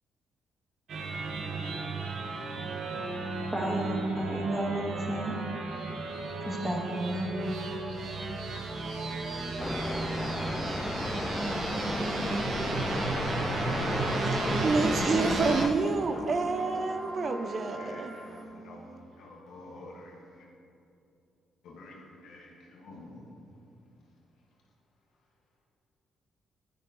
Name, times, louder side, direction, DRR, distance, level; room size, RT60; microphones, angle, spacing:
sound 1, 0.9-15.7, right 3 dB, 65° right, 1.2 m, -34 dB
voice 1, 3.5-5.4 6.4-7.3 7.6-7.8, right 1 dB, 10° right, 1.6 m, -32 dB
sound 2, 9.6-15.7, left 2 dB, 20° left, 0.3 m, -33 dB
sound 3, 10.7-18.4, right 2 dB, 30° right, 1.3 m, -45 dB
voice 2, 14.6-18.1, right 4 dB, 45° right, 0.5 m, -28 dB
voice 3, 16.6-20.4 21.6-23.2, left 2 dB, 80° left, 1.8 m, -49 dB
12.0 x 6.7 x 3.1 m
cardioid pair, 90°, 0 cm